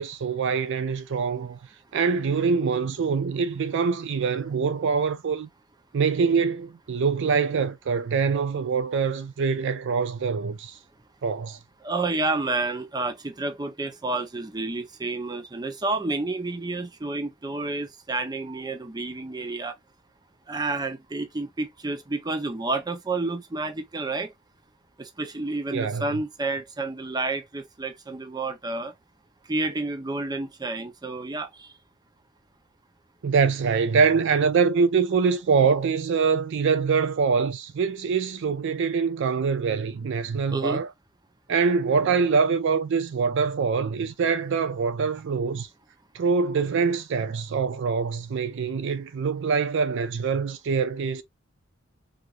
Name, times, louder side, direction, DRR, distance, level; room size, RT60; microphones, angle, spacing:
voice 1, 0.0-1.6 1.9-5.5 5.9-10.8 11.2-11.6 25.7-26.1 33.2-40.9 41.5-45.7 46.1-51.2, right 5 dB, 65° right, 0.4 m, -24 dB
voice 2, 11.8-19.7 20.5-24.3 25.0-28.9 29.5-31.7 40.5-40.8, right 2 dB, 20° right, 0.7 m, -30 dB
4.5 x 2.5 x 2.5 m
head